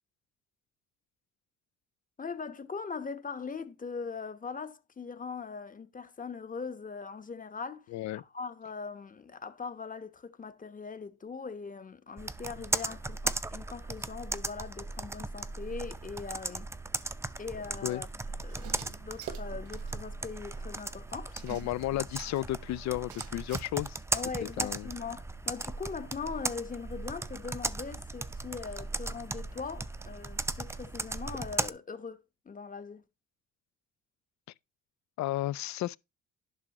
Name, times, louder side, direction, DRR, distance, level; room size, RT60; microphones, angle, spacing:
voice 1, 2.2-7.9 8.1-16.7 17.4-18.1 18.4-21.5 24.1-33.0, left 5 dB, 25° left, 1.1 m, -41 dB
voice 2, 7.9-8.2 17.8-18.0 21.4-24.0 24.4-24.9 35.2-36.0, left 15 dB, 65° left, 0.4 m, -33 dB
Computer keyboard, 12.2-31.7, right 2 dB, 10° right, 0.5 m, -37 dB
sound 1, 18.5-19.9 20.2-20.3 20.5-20.6 21.4-22.6 23.1-23.6, right 10 dB, 90° right, 1.3 m, -45 dB
11.0 x 6.1 x 3.0 m
cardioid pair, 90°, 30 cm